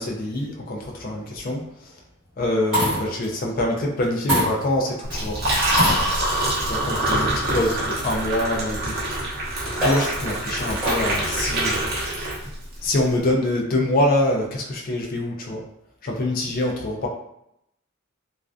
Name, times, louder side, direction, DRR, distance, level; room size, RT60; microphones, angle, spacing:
voice 1, 0.0-1.6 2.4-5.4 6.6-7.3 7.5-9.0 9.8-11.9 12.8-15.6 16.0-17.1, left 1 dB, 45° left, 0 dB, 0.4 m, -25 dB
sound 1, 1.0-1.4 2.4-3.3 4.3-5.0 5.7-6.5 7.2-7.3 9.4-11.2 12.4-12.9, equal, 5° right, 1.3 m, -26 dB
Liquid, 5.0-12.7, right 1 dB, 50° right, 0.7 m, -25 dB
2.3 x 2.2 x 2.4 m, 0.78 s
head